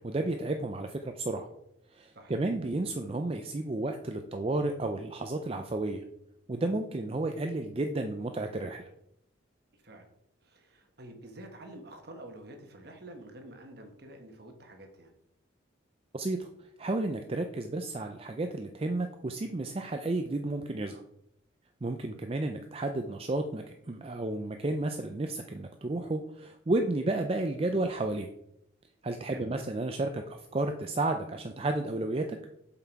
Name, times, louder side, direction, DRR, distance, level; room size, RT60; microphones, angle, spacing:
voice 1, 0.0-1.5 1.9-6.0 6.5-8.9 16.1-16.5 16.8-21.0 21.8-28.3 29.0-32.4, right 2 dB, 30° right, 5 dB, 0.4 m, -32 dB
voice 2, 10.4-15.1 29.3-29.5, right 1 dB, 50° right, 4 dB, 1.4 m, -48 dB
7.5 x 5.8 x 4.6 m, 0.78 s
head